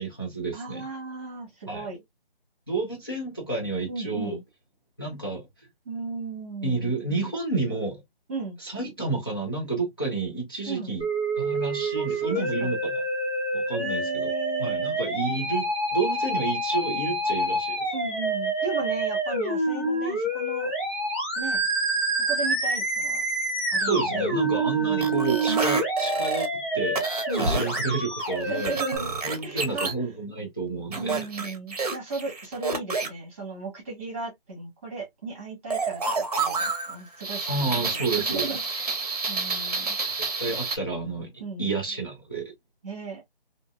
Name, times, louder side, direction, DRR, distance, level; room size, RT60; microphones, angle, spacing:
voice 1, 0.0-0.9 1.7-1.9 2.7-4.4 5.0-5.5 6.6-8.0 8.6-11.1 11.4-13.0 13.5-14.3 14.6-17.8 23.8-27.1 27.3-28.8 29.2-31.2 37.5-38.5 40.2-41.3 41.6-42.5, right 3 dB, 25° left, 0.5 m, -30 dB
voice 2, 0.5-2.0 3.9-4.4 5.8-6.9 8.3-8.6 10.7-10.9 11.9-12.8 13.8-14.9 17.9-20.7 21.3-21.7 22.3-23.2 23.7-24.3 24.8-25.1 27.3-27.6 28.4-29.1 29.4-29.9 31.0-37.5 37.8-38.0 38.3-38.9 39.3-40.0 41.4-41.7 42.8-43.2, right 3 dB, 15° right, 1.2 m, -36 dB
Musical instrument, 11.0-29.0, right 2 dB, 5° left, 2.0 m, -27 dB
sound 1, 25.0-26.5 26.9-27.8 28.2-29.9 30.9-33.1 35.7-40.8, right 4 dB, 40° right, 0.7 m, -29 dB
3.6 x 2.7 x 2.3 m
figure-of-eight pair, 165°, 30 cm